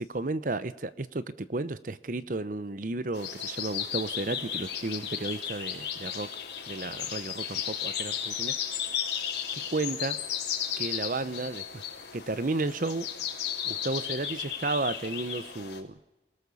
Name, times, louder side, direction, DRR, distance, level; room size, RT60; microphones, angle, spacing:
voice 1, 0.0-6.3 6.7-8.5 9.5-10.2 10.8-11.8 12.1-13.1 13.6-16.0, right 2 dB, 45° right, 15 dB, 0.8 m, -33 dB
sound 1, 3.1-15.8, left 8 dB, 70° left, 3.6 m, -34 dB
27.5 x 18.0 x 7.1 m, 1.0 s
head